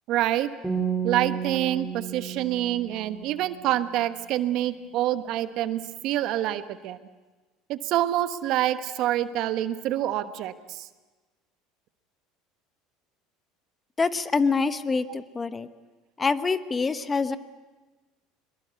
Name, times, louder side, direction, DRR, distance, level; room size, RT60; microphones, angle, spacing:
voice 1, 0.1-0.5 1.0-7.0 7.7-10.9, right 13 dB, 60° right, 11 dB, 1.2 m, -27 dB
sound 1, 0.6-3.8, right 7 dB, ahead, 4.6 m, -32 dB
voice 2, 14.0-15.7 16.2-17.4, left 4 dB, 25° left, 12 dB, 1.1 m, -25 dB
23.0 x 21.5 x 8.3 m, 1.2 s
hypercardioid pair, 85°, 0 cm